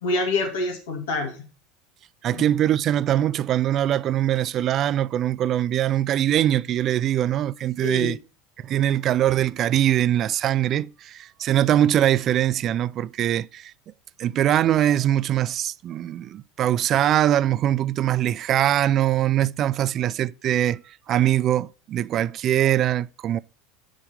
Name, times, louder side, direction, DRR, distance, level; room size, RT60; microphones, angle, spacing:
voice 1, 0.0-1.4 2.3-2.5 7.8-8.1 14.2-14.4, left 2 dB, 75° left, 2.3 m, -27 dB
voice 2, 2.2-8.2 8.6-13.7 14.2-23.4, right 12 dB, 45° right, 0.4 m, -22 dB
7.1 x 5.2 x 5.2 m
hypercardioid pair, 80°, 0 cm